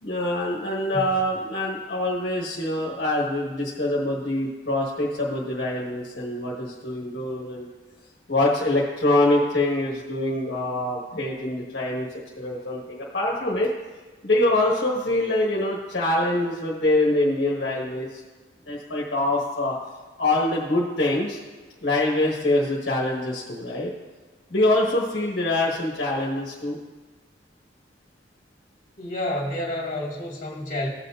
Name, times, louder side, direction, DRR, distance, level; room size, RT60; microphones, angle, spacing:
voice 1, 0.0-7.7 8.3-12.1 12.4-13.7 14.2-18.2 18.7-19.8 20.2-21.4 21.8-23.9 24.5-26.8, left 1 dB, 70° left, -4 dB, 1.4 m, -24 dB
voice 2, 29.0-30.9, left 1 dB, 45° left, -2 dB, 2.0 m, -29 dB
16.5 x 6.8 x 2.5 m, 1.3 s
head